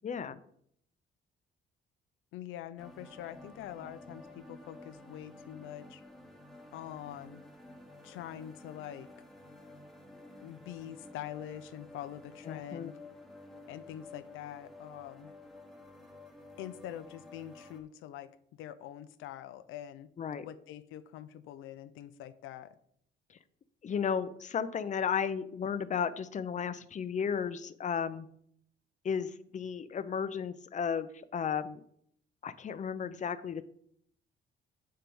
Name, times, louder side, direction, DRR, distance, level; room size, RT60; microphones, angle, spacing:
voice 1, 0.0-0.4 12.5-12.9 20.2-20.5 23.8-28.3 29.0-31.8 32.4-33.7, left 7 dB, 40° left, 12 dB, 0.6 m, -34 dB
voice 2, 2.3-6.0 6.7-7.4 8.0-9.1 10.4-12.9 13.7-15.3 16.6-18.3 18.6-20.1 20.4-22.8, left 11 dB, 90° left, 11 dB, 0.5 m, -44 dB
sound 1, 2.8-17.8, left 2 dB, ahead, 1.2 m, -52 dB
7.6 x 4.5 x 5.3 m, 0.67 s
cardioid pair, 90°, 20 cm